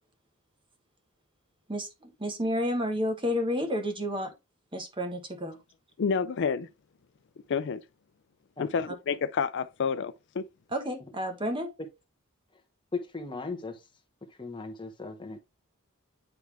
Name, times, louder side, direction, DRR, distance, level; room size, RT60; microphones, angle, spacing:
voice 1, 1.7-4.3 4.7-5.6 10.7-11.7, equal, 25° right, 1.2 m, -31 dB
voice 2, 6.0-6.7 7.5-7.8 8.6-10.5, left 6 dB, 55° left, 0.4 m, -29 dB
voice 3, 12.9-13.8 14.4-15.4, left 4 dB, 25° left, 1.1 m, -37 dB
9.3 x 3.4 x 3.3 m
head